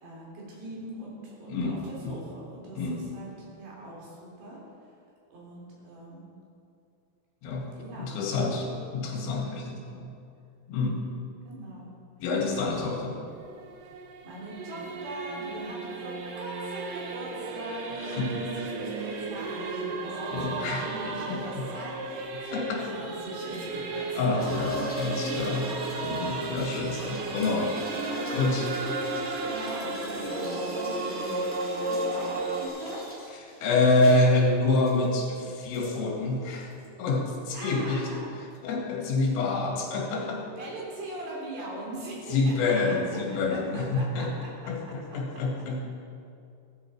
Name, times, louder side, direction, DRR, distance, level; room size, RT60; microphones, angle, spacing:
voice 1, 0.0-4.6 5.3-6.3 7.7-8.2 11.4-11.9 14.2-24.9 26.9-27.2 29.4-31.4 31.8-33.0 33.4-33.6 37.5-38.3 40.4-42.5 42.9-43.0 43.5-44.7 45.1-45.2, right 1 dB, 55° right, -4 dB, 5.6 m, -41 dB
voice 2, 1.5-2.2 2.8-3.1 7.4-7.7 8.0-10.1 10.7-11.0 12.2-13.2 18.0-18.4 20.3-20.9 21.3-21.7 22.5-23.0 24.2-25.7 26.0-27.8 28.3-28.8 33.6-36.7 37.0-38.2 38.6-40.5 42.3-44.3 44.7-45.8, left 3 dB, 80° left, 0 dB, 4.6 m, -27 dB
Singing / Musical instrument, 13.3-32.7, right 3 dB, 85° right, 1.8 m, -34 dB
sound 1, 24.4-33.3 34.0-34.2 34.8-35.1 35.7-35.9 36.7-36.9, equal, 5° left, 1.0 m, -40 dB
sound 2, 25.1-33.6, equal, 25° right, 4.3 m, -51 dB
16.0 x 14.0 x 4.6 m, 2.5 s
omnidirectional pair, 5.8 m